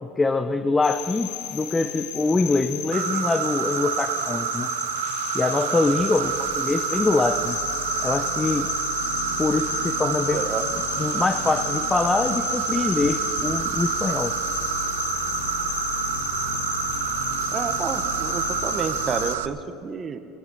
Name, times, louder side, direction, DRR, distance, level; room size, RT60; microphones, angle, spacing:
voice 1, 0.0-4.7 5.3-7.6 8.0-8.7 9.4-10.4 11.0-14.4, left 3 dB, 15° left, 9 dB, 0.7 m, -24 dB
sound 1, 0.8-19.4, left 10 dB, 65° left, 1.3 m, -32 dB
Insect, 2.9-19.5, right 12 dB, 85° right, 0.5 m, -28 dB
voice 2, 10.3-10.7 17.5-20.2, right 6 dB, 30° right, 10 dB, 1.2 m, -30 dB
17.5 x 15.0 x 5.6 m, 2.6 s
supercardioid pair, 100°, 0 cm